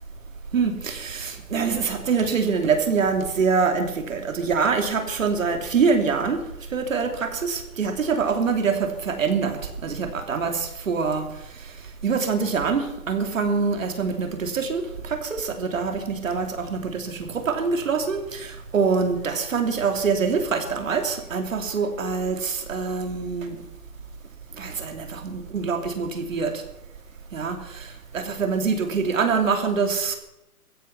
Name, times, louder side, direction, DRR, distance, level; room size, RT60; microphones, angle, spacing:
voice 1, 0.5-6.4 6.7-11.3 12.0-23.6 24.6-26.6 27.3-27.9 28.1-30.2, right 5 dB, 60° right, 5 dB, 3.0 m, -25 dB
15.5 x 15.0 x 5.9 m, 0.89 s
hypercardioid pair, 170°, 44 cm